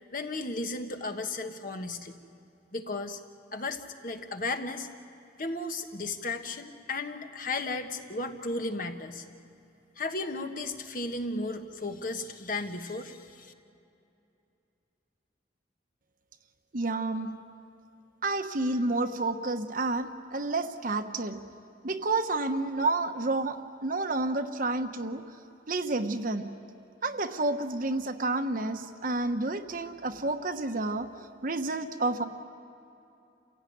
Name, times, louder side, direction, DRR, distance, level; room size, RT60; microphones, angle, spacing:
voice 1, 0.1-2.2 2.7-3.2 3.5-4.9 5.4-9.2 10.0-13.5, left 2 dB, 45° left, 6 dB, 1.4 m, -34 dB
voice 2, 16.7-17.3 18.2-21.4 21.8-25.2 25.7-26.5 27.0-31.1 31.4-32.2, right 2 dB, 45° right, 7 dB, 1.1 m, -30 dB
29.0 x 16.5 x 9.4 m, 2.7 s
head